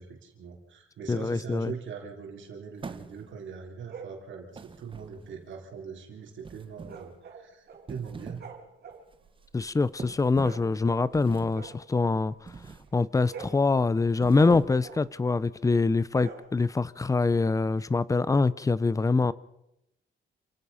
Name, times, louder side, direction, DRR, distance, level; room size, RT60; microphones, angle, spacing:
voice 1, 0.0-8.4, right 6 dB, 70° right, 4.0 m, -41 dB
voice 2, 1.1-1.7 9.5-12.3 12.9-19.3, left 3 dB, 15° left, 0.7 m, -24 dB
sound 1, 2.8-3.5 4.5-5.5 6.4-7.1 7.7-8.5 8.9-9.1 10.0-10.7 11.1-11.7 12.5-12.9 13.3-13.6 14.1-15.0, right 4 dB, 25° right, 1.2 m, -43 dB
sound 2, 3.9-4.2 6.8-7.9 8.2-11.2 11.5-12.8 13.1-15.2 16.1-16.9, right 6 dB, 55° right, 3.6 m, -46 dB
28.0 x 16.5 x 5.7 m
wide cardioid pair, 160°, 20 cm